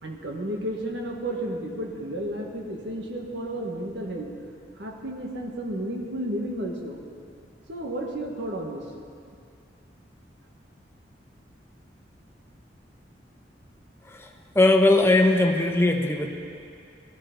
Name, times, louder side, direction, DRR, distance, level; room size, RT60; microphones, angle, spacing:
voice 1, 0.0-4.3 4.8-7.0 7.7-8.8, right 1 dB, 85° right, 1 dB, 1.7 m, -32 dB
voice 2, 14.5-16.3, left 2 dB, 15° left, 2 dB, 1.0 m, -19 dB
17.5 x 13.0 x 4.0 m, 2.4 s
head